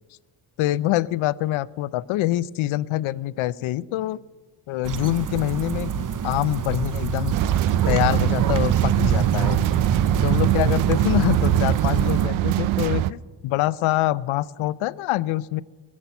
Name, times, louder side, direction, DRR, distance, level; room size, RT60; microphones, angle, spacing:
voice 1, 0.6-4.2 4.7-7.4 7.9-9.6 10.2-15.6, left 15 dB, 80° left, 20 dB, 0.6 m, -25 dB
sound 1, 4.8-12.3, right 8 dB, 40° right, 0.7 m, -24 dB
sound 2, 7.3-13.1, right 14 dB, 75° right, 0.6 m, -23 dB
19.0 x 7.4 x 9.3 m, 1.4 s
cardioid pair, 80°, 47 cm